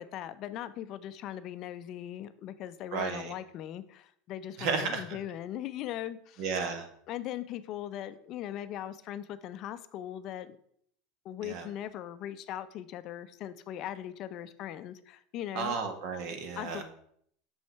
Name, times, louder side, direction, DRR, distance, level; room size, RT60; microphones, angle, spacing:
voice 1, 0.0-6.5 7.1-10.6 11.2-15.8 16.6-16.8, left 11 dB, 45° left, 13 dB, 0.5 m, -39 dB
voice 2, 2.9-3.3 4.6-5.0 6.4-6.9 11.4-11.6 15.5-16.8, right 5 dB, 55° right, 6 dB, 1.4 m, -33 dB
6.4 x 5.6 x 4.5 m, 0.64 s
supercardioid pair, 140°, 0 cm